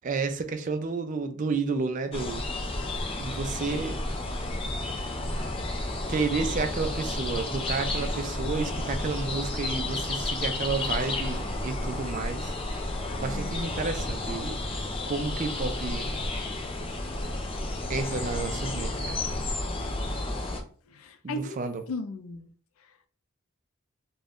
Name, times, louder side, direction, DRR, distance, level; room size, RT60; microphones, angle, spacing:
voice 1, 0.0-2.4 3.2-4.0 6.1-12.5 13.1-14.6 15.1-16.1 17.9-19.2 21.2-21.8, right 4 dB, 40° right, 0.4 m, -31 dB
sound 1, 2.1-20.6, left 2 dB, 25° left, 0.4 m, -31 dB
voice 2, 13.2-13.6 20.9-21.6 21.9-22.5, left 2 dB, 90° left, 0.4 m, -36 dB
2.5 x 2.2 x 3.4 m
head